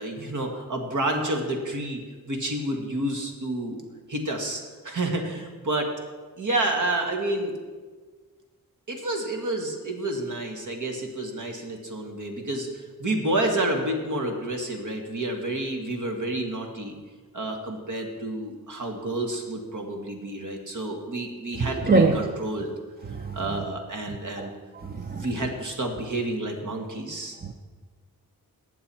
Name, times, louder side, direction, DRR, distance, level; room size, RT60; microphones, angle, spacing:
voice 1, 0.0-2.0 2.3-3.8 4.1-5.9 6.4-7.5 8.9-16.9 17.3-22.7 23.3-24.5 24.9-27.4, right 1 dB, 60° right, 3 dB, 1.8 m, -29 dB
voice 2, 21.9-22.2 23.1-23.4 24.4-24.5 25.0-25.2, right 3 dB, 25° right, 5 dB, 0.6 m, -21 dB
18.5 x 7.1 x 4.4 m, 1.4 s
wide cardioid pair, 120°, 35 cm